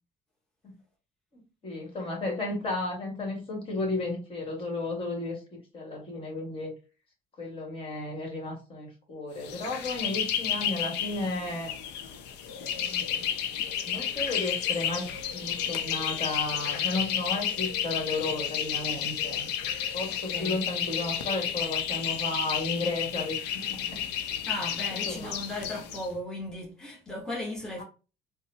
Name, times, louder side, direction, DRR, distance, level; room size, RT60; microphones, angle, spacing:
voice 1, 1.3-6.7 7.4-11.7 12.6-13.3 13.8-19.5 19.9-24.0 24.9-25.4 27.8-27.9, left 2 dB, 35° left, 1.6 m, -34 dB
sound 1, 9.4-26.1, left 9 dB, 85° left, 0.6 m, -31 dB
voice 2, 20.3-20.6 24.5-27.8, left 1 dB, 5° left, 1.1 m, -36 dB
4.0 x 2.1 x 2.8 m
cardioid pair, 110°, 17 cm